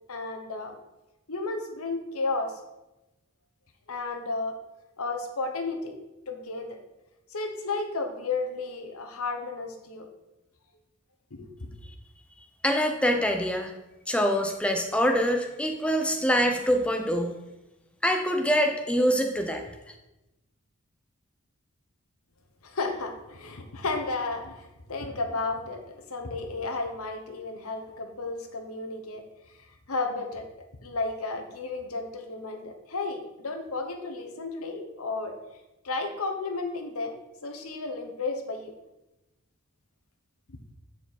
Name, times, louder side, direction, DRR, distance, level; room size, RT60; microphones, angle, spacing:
voice 1, 0.1-0.7 1.3-2.6 3.9-4.6 5.0-5.9 6.3-6.8 7.3-10.1 11.3-11.7 22.6-29.2 29.9-30.5 30.8-35.4 35.8-37.2 37.4-38.7, left 3 dB, 80° left, 5 dB, 1.0 m, -33 dB
voice 2, 12.6-13.7 14.1-17.3 18.0-19.6, equal, 5° left, 4 dB, 0.6 m, -24 dB
9.5 x 4.6 x 4.2 m, 0.98 s
head